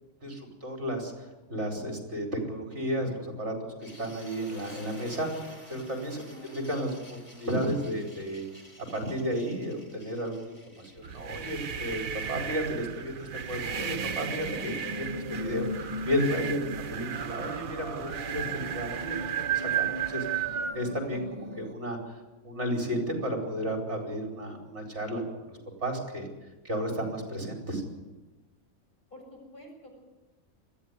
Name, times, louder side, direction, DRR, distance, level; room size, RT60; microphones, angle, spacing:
voice 1, 0.2-6.2 6.5-8.4 8.9-10.5 10.7-19.2 19.5-21.2 21.6-22.2 22.4-26.3 26.6-27.8, equal, 50° right, 1 dB, 4.9 m, -33 dB
sound 1, 3.8-15.8, left 1 dB, 40° left, 4.1 m, -52 dB
voice 2, 6.1-6.6 29.1-30.0, left 1 dB, 80° left, -1 dB, 8.2 m, -48 dB
sound 2, 11.0-20.8, right 9 dB, 75° right, 1.3 m, -34 dB
sound 3, 13.7-21.7, equal, 20° right, 1.5 m, -39 dB
21.0 x 14.5 x 9.6 m, 1.1 s
omnidirectional pair, 1.5 m